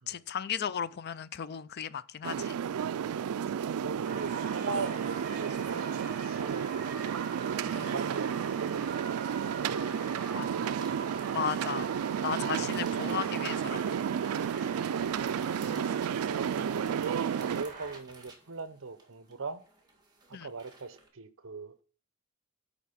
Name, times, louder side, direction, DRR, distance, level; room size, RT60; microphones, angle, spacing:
voice 1, 0.1-2.6 7.7-7.9 10.3-10.5 11.3-11.9 12.2-14.0 15.7-15.9 20.3-20.5, left 8 dB, 45° left, 0.4 m, -35 dB
sound 1, 2.2-17.6, right 8 dB, 80° right, 0.3 m, -32 dB
voice 2, 3.8-7.1 7.6-9.2 9.6-10.9 14.6-15.0 15.9-17.2 17.5-19.6 20.3-21.8, right 4 dB, 60° right, 0.8 m, -41 dB
sound 2, 4.1-18.0, right 5 dB, 35° right, 1.9 m, -43 dB
sound 3, 10.1-21.1, right 3 dB, 20° right, 1.9 m, -57 dB
10.5 x 4.2 x 5.7 m
head